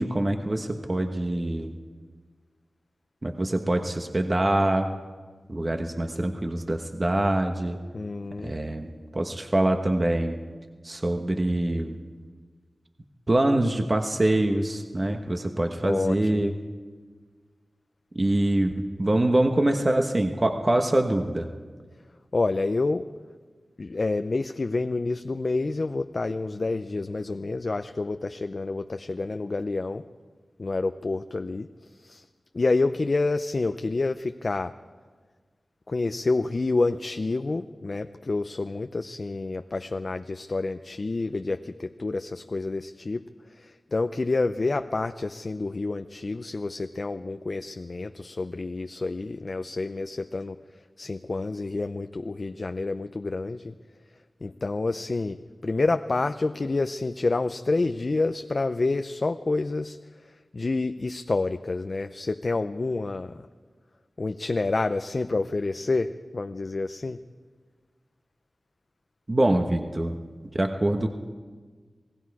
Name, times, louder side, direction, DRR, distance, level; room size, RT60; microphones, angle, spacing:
voice 1, 0.0-1.8 3.2-4.9 5.5-7.8 8.4-10.4 10.8-12.0 13.3-16.5 18.1-21.5 69.3-70.1 70.5-71.1, right 1 dB, 35° right, 4 dB, 1.2 m, -24 dB
voice 2, 7.9-8.6 15.8-16.4 22.3-23.1 23.8-30.0 30.6-32.2 32.5-34.7 35.9-50.6 51.0-53.7 54.4-60.0 60.2-63.5 64.2-67.2, left 3 dB, 50° left, 8 dB, 0.5 m, -28 dB
28.5 x 19.0 x 4.8 m, 1.5 s
wide cardioid pair, 70°, 0 cm